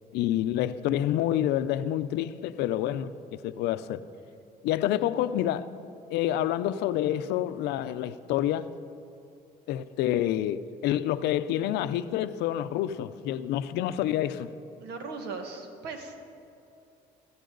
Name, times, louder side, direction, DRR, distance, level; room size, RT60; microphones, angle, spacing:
voice 1, 0.1-4.0 4.6-5.7 6.1-8.7 9.7-14.5, left 12 dB, 85° left, 0.5 m, -28 dB
voice 2, 14.8-16.2, right 4 dB, 85° right, 1.5 m, -38 dB
15.5 x 15.5 x 3.9 m
cardioid pair, 110°, 17 cm